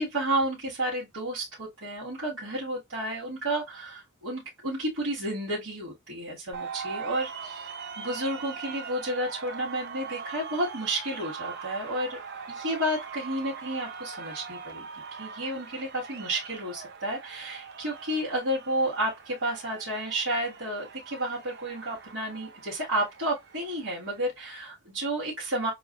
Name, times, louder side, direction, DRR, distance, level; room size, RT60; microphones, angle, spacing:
voice 1, 0.0-7.7 8.0-12.2 12.5-25.7, right 1 dB, 70° right, 1.9 m, -31 dB
sound 1, 6.5-24.3, right 6 dB, 55° right, 0.8 m, -42 dB
6.8 x 2.6 x 2.4 m
head